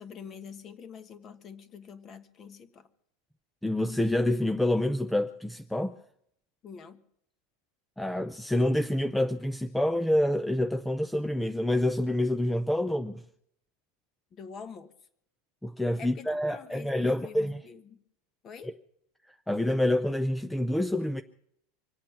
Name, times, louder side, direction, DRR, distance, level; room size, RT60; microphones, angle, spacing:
voice 1, 0.0-2.9 6.6-7.0 14.3-14.9 16.0-18.0 18.4-18.7, left 6 dB, 25° left, 1.3 m, -46 dB
voice 2, 3.6-6.0 8.0-13.2 15.6-17.6 19.3-21.2, left 1 dB, ahead, 0.5 m, -27 dB
25.5 x 8.8 x 5.8 m
supercardioid pair, 160°, 0 cm